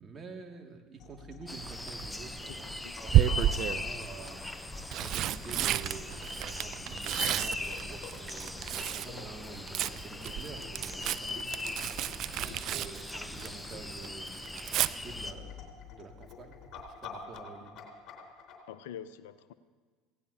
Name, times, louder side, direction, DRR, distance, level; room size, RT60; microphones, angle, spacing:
voice 1, 0.0-11.5 12.2-16.6 17.0-17.8, right 4 dB, 30° right, 2 dB, 2.2 m, -48 dB
sound 1, 1.0-18.5, left 7 dB, 50° left, 3.6 m, -50 dB
sound 2, 1.5-15.3, left 2 dB, 10° left, 0.7 m, -40 dB
Tearing, 1.6-2.1 3.1-3.9 4.6-9.1 9.4-13.7 14.0-14.9 16.8-17.1 17.4-17.5, right 12 dB, 50° right, 0.4 m, -31 dB
voice 2, 2.8-3.2 12.5-12.7 18.7-19.5, left 9 dB, 70° left, 14 dB, 0.6 m, -46 dB
26.5 x 17.0 x 2.8 m, 1.5 s
hypercardioid pair, 70°, 0 cm